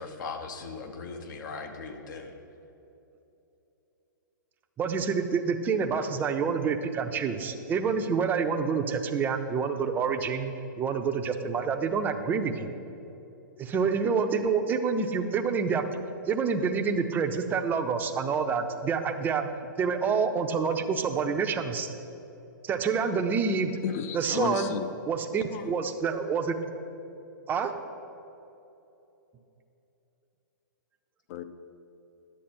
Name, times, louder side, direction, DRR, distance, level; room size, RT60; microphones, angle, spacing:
voice 1, 0.0-2.3, left 4 dB, 65° left, 5 dB, 1.1 m, -39 dB
voice 2, 4.8-12.7 13.6-19.4 19.8-21.9 22.6-23.7 24.1-24.7 25.1-26.6 27.5-27.7, right 5 dB, 15° right, 6 dB, 0.5 m, -27 dB
voice 3, 23.8-24.9 25.5-25.7 31.3-31.4, left 7 dB, 45° left, 10 dB, 0.6 m, -32 dB
10.0 x 7.4 x 4.3 m, 3.0 s
hypercardioid pair, 130°, 11 cm